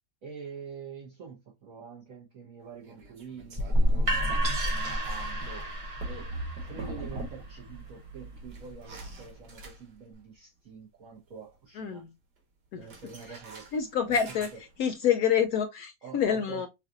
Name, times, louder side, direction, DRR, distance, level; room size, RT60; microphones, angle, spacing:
voice 1, 0.2-5.7 6.0-6.4 6.6-12.0 12.7-13.7 16.0-16.6, right 6 dB, 55° right, 1.6 m, -46 dB
sound 1, 2.8-7.7 7.9-10.2 12.8-14.9, right 2 dB, 85° right, 2.0 m, -42 dB
sound 2, 3.6-9.4, equal, 40° right, 0.4 m, -30 dB
voice 2, 11.8-12.1 12.7-12.9 13.7-14.5 14.8-16.7, left 8 dB, 70° left, 1.0 m, -27 dB
5.5 x 2.5 x 2.5 m
omnidirectional pair, 1.8 m